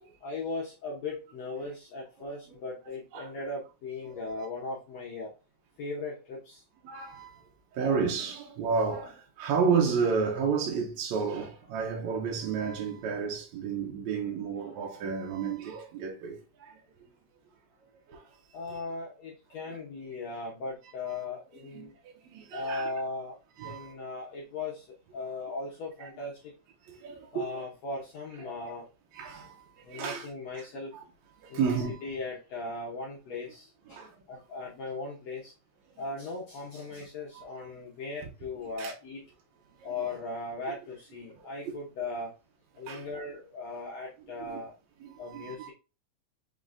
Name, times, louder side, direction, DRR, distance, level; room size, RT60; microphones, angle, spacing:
voice 1, 0.2-5.3 5.8-6.6 18.5-21.9 22.5-23.4 23.6-26.5 27.3-28.9 29.8-30.9 31.5-31.7 32.0-35.5 36.0-39.2 39.8-42.3 42.7-44.7 45.2-45.7, left 3 dB, 70° left, 1.7 m, -38 dB
voice 2, 6.8-7.4 7.7-16.8 18.1-18.3 21.7-21.9 22.2-22.9 23.6-23.9 26.0-26.1 26.9-27.6 28.6-28.7 29.1-30.3 30.5-30.6 31.4-32.0 33.9-34.1 37.4-37.5 38.8-38.9 42.9-43.1 44.4-44.6 45.0-45.7, right 5 dB, 70° right, 1.8 m, -31 dB
5.3 x 3.7 x 2.5 m
omnidirectional pair, 4.0 m